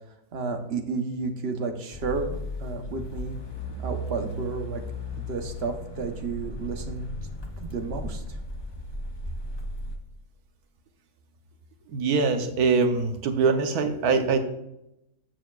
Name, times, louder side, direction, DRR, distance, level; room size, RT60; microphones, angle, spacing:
voice 1, 0.3-3.4 3.8-4.8 5.2-7.1 7.6-8.4, right 4 dB, 45° right, 5 dB, 1.1 m, -32 dB
sound 1, 1.9-10.0, left 1 dB, 20° left, 0.7 m, -36 dB
voice 2, 11.9-14.4, right 4 dB, 75° right, 6 dB, 1.4 m, -23 dB
14.0 x 6.8 x 2.4 m, 0.85 s
omnidirectional pair, 1.6 m